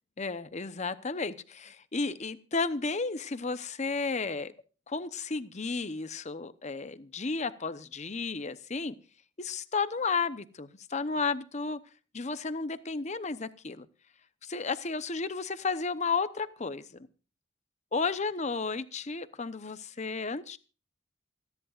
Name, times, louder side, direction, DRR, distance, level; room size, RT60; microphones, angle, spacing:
voice 1, 0.2-4.5 4.9-9.0 9.4-11.8 12.1-13.9 14.4-17.1 17.9-20.6, left 4 dB, 35° left, 13 dB, 0.8 m, -33 dB
28.0 x 10.5 x 2.5 m, 0.36 s
head